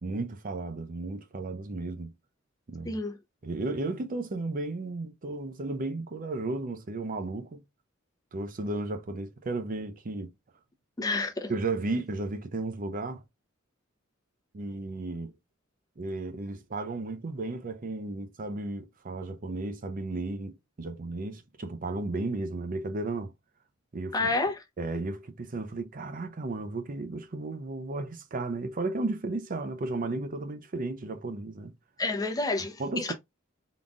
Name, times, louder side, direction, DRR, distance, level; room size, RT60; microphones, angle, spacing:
voice 1, 0.0-2.1 2.7-3.0 3.4-7.6 8.3-10.3 11.5-13.2 14.5-15.3 16.0-23.3 23.9-24.3 24.8-31.7 32.8-33.1, right 2 dB, 45° right, 0.5 m, -34 dB
voice 2, 2.8-3.2 11.0-11.5 24.1-24.6 32.0-33.1, left 3 dB, 20° left, 0.8 m, -29 dB
3.8 x 2.4 x 3.5 m
head